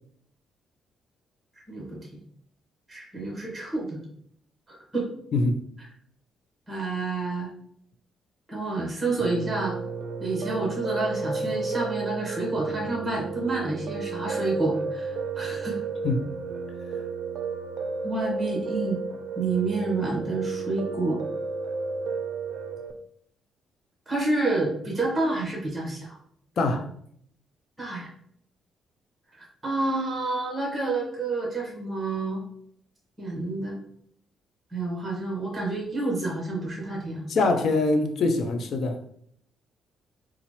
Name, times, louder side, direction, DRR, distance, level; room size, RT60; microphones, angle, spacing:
voice 1, 1.7-2.0 2.9-4.0 4.7-5.1 6.7-7.5 8.5-9.8 10.2-15.8 18.0-19.0 19.4-21.2 24.1-26.2 26.6-26.8 27.8-28.1 29.4-32.4 33.2-33.8 34.7-37.3, right 2 dB, 15° right, 1.5 m, -29 dB
voice 2, 5.3-5.6 16.0-16.2 26.6-26.9 37.3-39.0, left 2 dB, 60° left, 0.5 m, -23 dB
Piano, 9.2-22.9, right 4 dB, 65° right, 0.4 m, -32 dB
4.0 x 2.4 x 3.0 m
cardioid pair, 90°, 0 cm